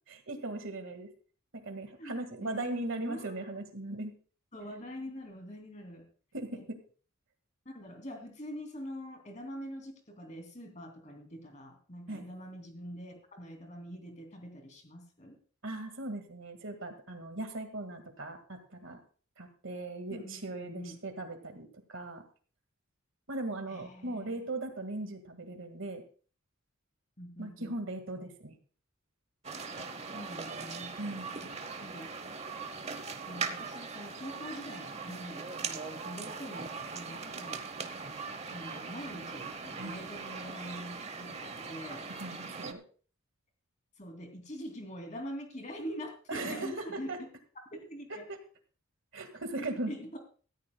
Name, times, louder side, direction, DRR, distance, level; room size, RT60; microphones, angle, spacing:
voice 1, 0.1-1.1 1.5-4.1 6.3-6.8 12.1-12.2 15.6-19.0 19.4-22.2 23.3-26.0 27.4-28.6 31.0-31.3 39.8-39.9 42.2-42.8 46.3-47.2 49.1-49.9, right 2 dB, 55° right, 7 dB, 1.9 m, -38 dB
voice 2, 2.0-3.6 4.5-6.1 6.5-6.6 7.6-15.4 20.1-21.0 23.7-24.5 27.2-27.7 29.8-31.0 31.4-31.5 31.8-32.1 33.3-37.6 38.5-42.1 44.0-47.3 47.7-48.3 49.6-50.2, equal, 30° left, 4 dB, 2.8 m, -44 dB
sound 1, 29.4-42.7, right 5 dB, 30° right, 0.9 m, -40 dB
17.5 x 14.0 x 2.3 m, 0.40 s
head